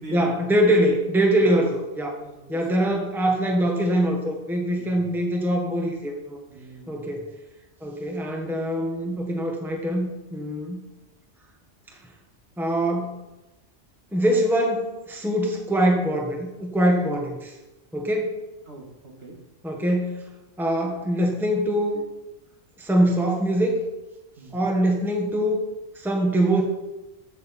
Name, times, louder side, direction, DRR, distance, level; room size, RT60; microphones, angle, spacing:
voice 1, 0.1-2.1 2.5-6.4 6.9-7.2 7.8-10.8 12.6-13.2 14.1-17.5 17.9-18.4 19.6-20.2 20.6-22.0 22.8-23.8 24.5-25.7 25.9-26.6, right 1 dB, ahead, 1 dB, 1.2 m, -23 dB
voice 2, 2.2-2.6 4.7-5.1 6.5-7.2 18.7-19.4 24.4-24.7, right 2 dB, 55° right, 0 dB, 2.1 m, -42 dB
14.5 x 6.4 x 4.2 m, 1.0 s
omnidirectional pair, 1.2 m